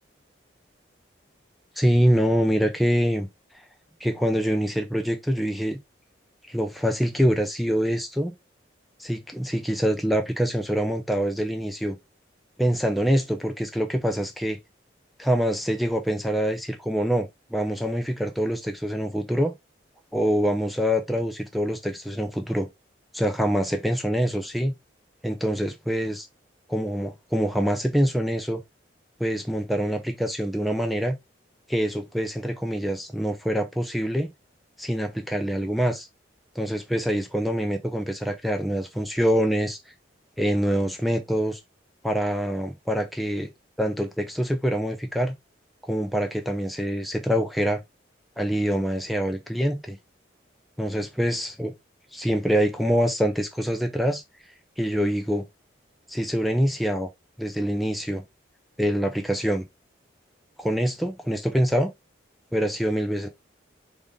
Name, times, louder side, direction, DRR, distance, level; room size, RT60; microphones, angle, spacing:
voice 1, 1.8-3.3 4.0-5.8 6.5-8.3 9.0-12.0 12.6-14.6 15.2-19.5 20.1-22.7 23.1-24.7 25.2-26.3 26.7-28.6 29.2-31.2 31.7-34.3 34.8-36.1 36.6-39.8 40.4-41.6 42.0-43.5 43.8-45.3 45.8-47.8 48.4-50.0 50.8-51.7 52.1-54.2 54.8-55.4 56.1-57.1 57.4-58.2 58.8-59.6 60.6-61.9 62.5-63.3, equal, ahead, 0.4 m, -25 dB
3.8 x 2.5 x 3.5 m
head